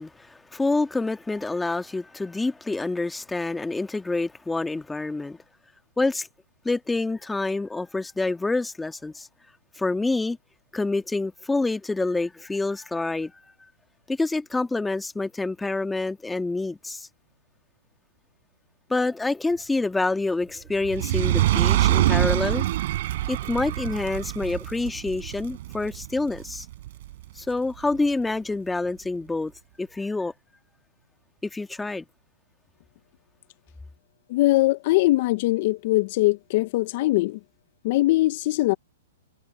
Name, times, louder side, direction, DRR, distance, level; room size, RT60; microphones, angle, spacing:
voice 1, 0.0-5.4 6.0-6.3 6.6-9.3 9.8-10.4 10.7-13.3 14.1-17.1 18.9-22.7 23.3-26.7 27.4-29.5 29.8-30.3 31.4-32.1, left 3 dB, 5° left, 1.9 m, -27 dB
Fire, 20.8-27.3 27.9-28.0, right 15 dB, 55° right, 5.3 m, -25 dB
voice 2, 34.3-37.4 37.8-38.7, left 18 dB, 45° left, 0.5 m, -21 dB
hypercardioid pair, 145°, 0 cm